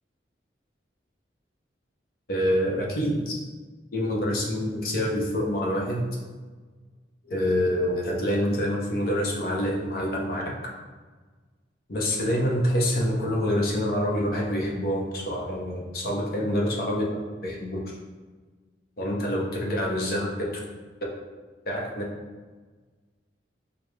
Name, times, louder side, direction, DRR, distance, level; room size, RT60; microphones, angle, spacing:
voice 1, 2.3-3.4 3.9-6.0 7.2-10.4 11.9-17.0 17.4-17.8 19.0-20.6 21.7-22.0, equal, 55° left, -2 dB, 0.7 m, -26 dB
4.8 x 2.1 x 3.1 m, 1.4 s
head